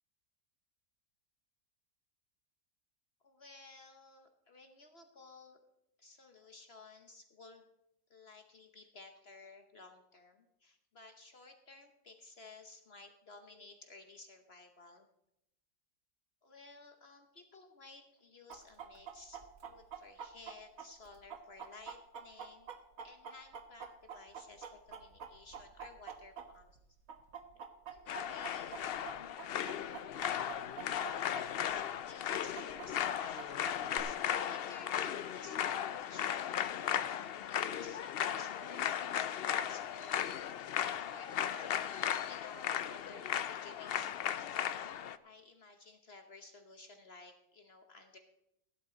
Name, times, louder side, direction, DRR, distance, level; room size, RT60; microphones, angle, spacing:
voice 1, 3.2-5.6 6.0-7.7 8.1-15.1 16.4-22.7 23.0-26.8 27.9-29.4 31.6-36.3 37.0-40.2 40.8-44.6 45.2-48.2, left 3 dB, 45° left, 5 dB, 1.1 m, -56 dB
Chicken rooster, 18.5-26.8 27.1-31.4 31.7-31.8 32.3-34.0, right 7 dB, 65° right, 1.5 m, -46 dB
sound 1, 28.1-45.2, left 10 dB, 85° left, 0.5 m, -36 dB
16.0 x 10.5 x 3.9 m, 0.82 s
omnidirectional pair, 1.6 m